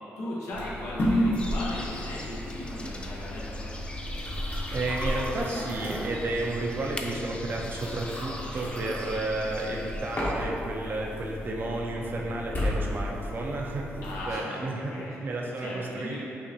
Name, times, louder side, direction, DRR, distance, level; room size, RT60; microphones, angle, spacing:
voice 1, 0.2-3.7 14.0-15.2 15.5-16.2, left 1 dB, 85° left, -7 dB, 1.0 m, -37 dB
sound 1, 0.5-14.3, left 1 dB, 40° left, 0.9 m, -33 dB
sound 2, 1.4-10.3, left 1 dB, 20° left, 0.4 m, -38 dB
voice 2, 4.7-13.9 14.3-14.9 15.2-16.2, right 2 dB, 45° right, -1 dB, 0.6 m, -32 dB
5.6 x 2.5 x 2.7 m, 2.8 s
cardioid pair, 85°, 5 cm